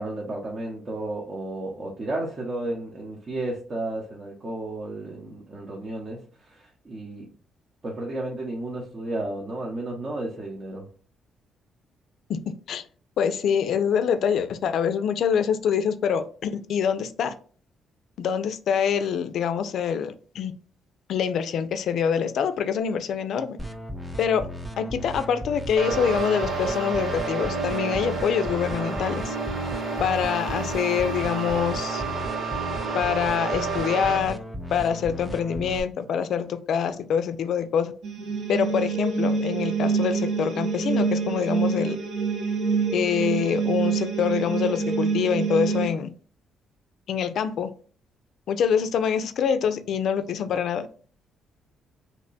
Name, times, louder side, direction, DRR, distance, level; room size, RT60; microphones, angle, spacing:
voice 1, 0.0-7.3 7.8-10.9, right 2 dB, 40° right, 0.8 m, -33 dB
voice 2, 13.2-17.3 18.2-20.5 21.1-23.6 24.2-24.5 24.8-29.3 30.0-32.0 32.9-34.4 34.7-37.9 38.5-42.0 42.9-46.1 47.1-47.7 48.5-50.9, left 7 dB, 70° left, 0.3 m, -25 dB
sound 1, 23.6-35.8, equal, 10° right, 0.4 m, -35 dB
sound 2, 25.8-34.2, right 4 dB, 60° right, 1.2 m, -30 dB
sound 3, 38.0-45.9, right 5 dB, 80° right, 0.7 m, -26 dB
2.9 x 2.1 x 3.9 m
cardioid pair, 90°, 0 cm